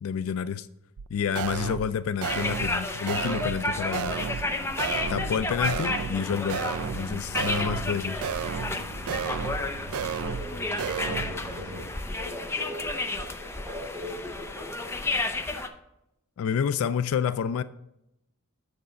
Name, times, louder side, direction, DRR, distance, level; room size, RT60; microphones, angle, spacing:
voice 1, 0.0-0.7 1.1-4.2 5.1-6.6 6.9-8.2 16.4-17.6, left 7 dB, 65° left, 0.3 m, -29 dB
sound 1, 1.0-1.1 1.4-1.9 2.2-2.8 3.1-3.6 3.9-4.5 4.8-5.4 5.6-6.2 6.5-7.1 7.4-7.9 8.2-8.8 9.1-9.6 9.9-10.5 10.8-11.3, right 7 dB, 75° right, 0.4 m, -32 dB
sound 2, 2.2-15.7, left 2 dB, 10° left, 0.5 m, -32 dB
sound 3, 3.6-11.9, right 1 dB, 55° right, 0.9 m, -42 dB
voice 2, 9.9-14.9, left 1 dB, 10° right, 3.9 m, -40 dB
7.9 x 6.7 x 5.0 m
head